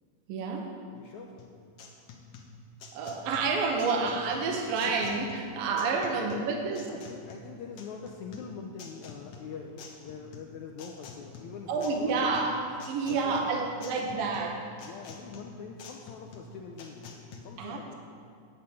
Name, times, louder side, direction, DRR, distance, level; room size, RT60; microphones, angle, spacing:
voice 1, 0.3-0.7 2.9-6.9 11.7-14.6 17.6-18.0, right 4 dB, 80° right, 2 dB, 2.8 m, -29 dB
voice 2, 0.9-1.4 5.5-5.6 6.1-6.5 6.9-12.3 13.1-13.7 14.0-14.4 14.8-17.2 17.4-18.0, left 6 dB, 80° left, 2 dB, 1.7 m, -44 dB
sound 1, 1.4-17.4, left 4 dB, 65° left, 1.7 m, -48 dB
10.5 x 7.6 x 8.5 m, 2.3 s
omnidirectional pair, 4.2 m